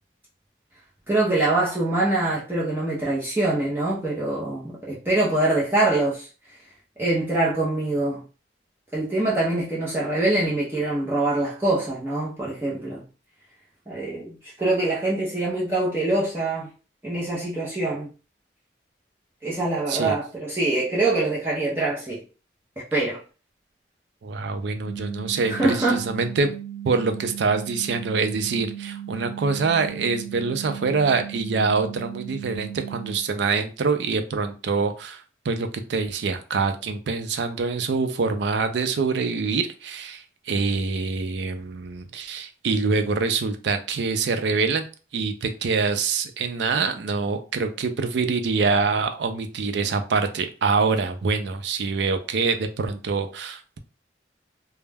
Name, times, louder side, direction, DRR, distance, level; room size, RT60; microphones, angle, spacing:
voice 1, 1.1-6.3 7.0-8.2 8.9-13.0 13.9-14.3 14.6-16.7 17.0-18.1 19.4-22.2 22.9-23.2 25.5-26.0, right 2 dB, 10° right, 0.5 m, -24 dB
voice 2, 24.2-26.5 26.8-44.8 45.1-53.8, right 4 dB, 70° right, 0.4 m, -25 dB
sound 1, 24.8-33.2, right 10 dB, 50° left, 0.5 m, -37 dB
2.2 x 2.0 x 3.3 m
head